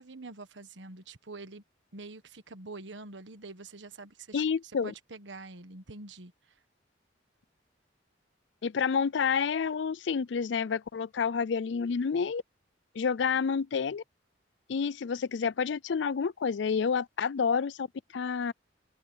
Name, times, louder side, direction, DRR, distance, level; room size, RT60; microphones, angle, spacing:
voice 1, 0.0-1.6 1.9-6.6, right 3 dB, 75° right, 1.4 m, -46 dB
voice 2, 4.3-4.9 8.6-12.4 12.9-14.0 14.7-17.9 18.1-18.5, left 6 dB, 70° left, 0.4 m, -29 dB
open air
head